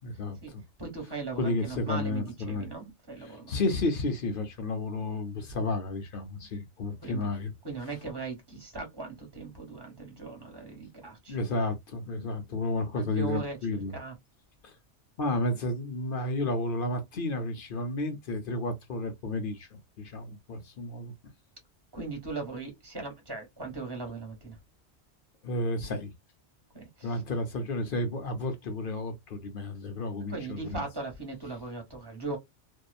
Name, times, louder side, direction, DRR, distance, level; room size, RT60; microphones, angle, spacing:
voice 1, 0.0-0.6 1.4-2.7 3.2-7.5 11.3-13.9 14.6-14.7 15.2-21.1 25.4-26.1 27.0-30.8, left 2 dB, 55° left, 0.8 m, -32 dB
voice 2, 0.8-3.6 7.0-7.3 7.6-11.4 12.9-14.1 21.9-24.6 26.7-27.2 30.3-32.4, right 4 dB, 20° right, 1.2 m, -38 dB
2.7 x 2.2 x 2.3 m
omnidirectional pair, 1.2 m